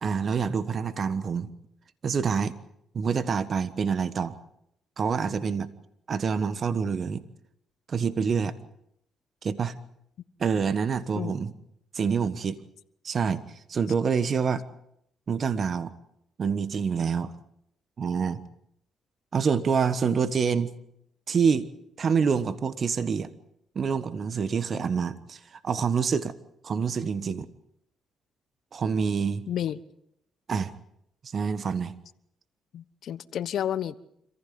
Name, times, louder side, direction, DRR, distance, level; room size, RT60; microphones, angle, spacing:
voice 1, 0.0-1.5 2.0-2.5 2.9-4.3 5.0-5.7 6.1-7.2 7.9-8.5 9.4-9.7 10.4-11.5 11.9-12.6 13.0-13.4 13.7-14.6 15.3-15.9 16.4-17.3 18.0-18.4 19.3-20.7 21.3-21.7 22.0-23.3 23.7-26.3 26.6-27.5 28.7-29.4 30.5-30.7 31.2-31.9, right 6 dB, 50° right, 1.4 m, -26 dB
voice 2, 29.5-29.8 32.7-34.0, left 10 dB, 70° left, 1.1 m, -30 dB
26.5 x 15.0 x 9.5 m
cardioid pair, 70°, 0 cm